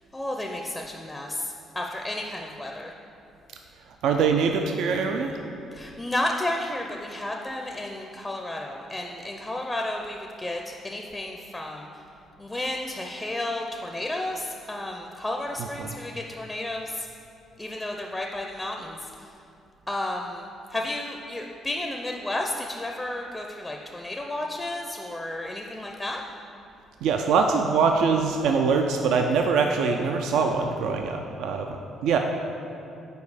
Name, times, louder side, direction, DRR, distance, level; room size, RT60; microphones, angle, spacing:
voice 1, 0.1-2.9 5.7-11.9 12.4-17.1 17.6-19.0 19.9-26.2, left 1 dB, 15° left, 2 dB, 0.4 m, -32 dB
voice 2, 4.0-5.4 15.6-16.0 27.0-32.2, right 5 dB, 80° right, 4 dB, 0.3 m, -23 dB
5.3 x 4.4 x 4.8 m, 2.6 s
cardioid pair, 80°, 0 cm